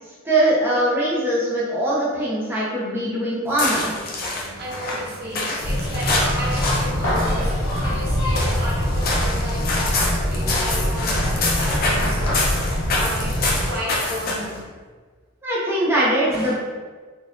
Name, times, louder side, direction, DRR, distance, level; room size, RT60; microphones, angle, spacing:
voice 1, 0.2-3.9 15.4-16.5, right 1 dB, 10° right, -8 dB, 0.7 m, -21 dB
sound 1, 3.5-14.6, left 2 dB, 50° left, 0.6 m, -27 dB
voice 2, 4.6-7.5 7.8-12.6 12.9-14.6 16.3-16.5, equal, 50° right, -4 dB, 0.7 m, -33 dB
sound 2, 5.6-13.7, equal, 80° left, 1.0 m, -23 dB
4.1 x 2.5 x 2.5 m, 1.5 s
head